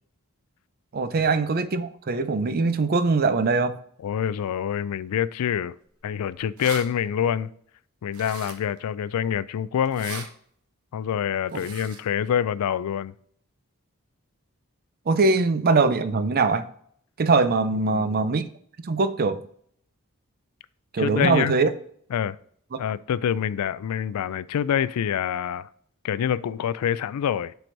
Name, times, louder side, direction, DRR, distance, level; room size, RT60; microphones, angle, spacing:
voice 1, 0.9-3.8 11.5-11.6 15.1-16.7 17.2-18.4 18.8-19.4 20.9-21.7, right 3 dB, 45° right, 0.5 m, -22 dB
voice 2, 4.0-5.7 6.0-7.5 8.0-10.3 10.9-13.1 17.8-18.2 21.0-21.5 22.1-22.4 22.8-25.7 26.0-27.5, left 9 dB, 90° left, 0.3 m, -26 dB
sound 1, 6.1-6.2 6.4-6.8 8.1-8.8 9.9-10.3 11.5-12.0, right 5 dB, 75° right, 1.0 m, -38 dB
7.6 x 4.7 x 2.6 m
head